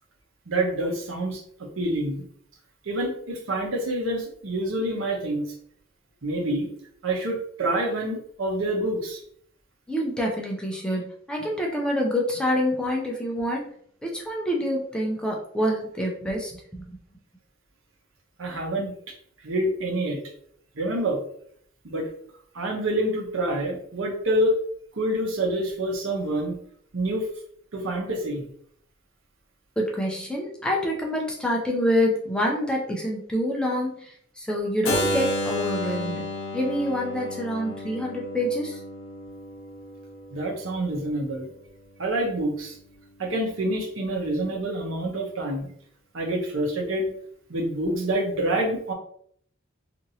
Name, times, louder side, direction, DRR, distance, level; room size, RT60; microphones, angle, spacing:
voice 1, 0.5-1.4 1.8-2.2 2.9-5.5 6.2-6.7 7.0-9.2 18.4-18.9 19.4-20.2 20.8-21.2 21.8-22.1 22.5-24.6 24.9-26.6 26.9-27.2 27.7-28.4 40.3-41.5 42.0-42.7 43.2-45.7 46.1-47.1 47.5-48.9, right 1 dB, 85° right, 0 dB, 0.8 m, -27 dB
voice 2, 9.9-13.7 14.0-16.9 29.8-34.1 34.4-36.3 36.5-38.8, equal, 5° left, -1 dB, 0.5 m, -26 dB
Keyboard (musical), 34.8-40.7, left 1 dB, 80° left, 0.7 m, -31 dB
2.9 x 2.5 x 2.7 m, 0.64 s
head